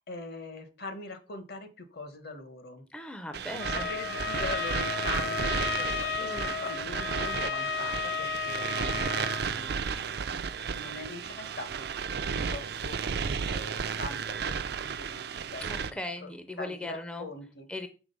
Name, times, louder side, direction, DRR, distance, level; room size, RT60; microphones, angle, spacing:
voice 1, 0.1-2.8 3.5-9.9 10.7-14.5 14.8-17.7, left 3 dB, 60° left, 9 dB, 1.0 m, -42 dB
voice 2, 2.9-3.9 6.2-6.5 15.6-17.3 17.7-17.9, left 1 dB, 5° left, 7 dB, 0.5 m, -39 dB
sound 1, 3.3-15.9, right 6 dB, 60° right, 0.4 m, -33 dB
Trumpet, 3.6-9.5, left 6 dB, 80° left, 0.5 m, -33 dB
6.1 x 3.7 x 5.3 m, 0.34 s
head